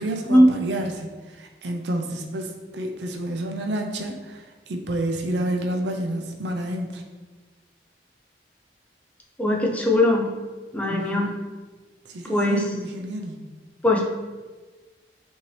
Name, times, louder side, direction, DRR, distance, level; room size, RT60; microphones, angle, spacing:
voice 1, 0.0-7.0 10.9-11.4 12.1-13.4, right 1 dB, 75° right, 2 dB, 0.5 m, -30 dB
voice 2, 9.4-10.3 10.7-11.3 12.3-12.7 13.8-14.0, left 1 dB, 10° left, 0 dB, 0.4 m, -19 dB
5.6 x 2.7 x 3.2 m, 1.3 s
head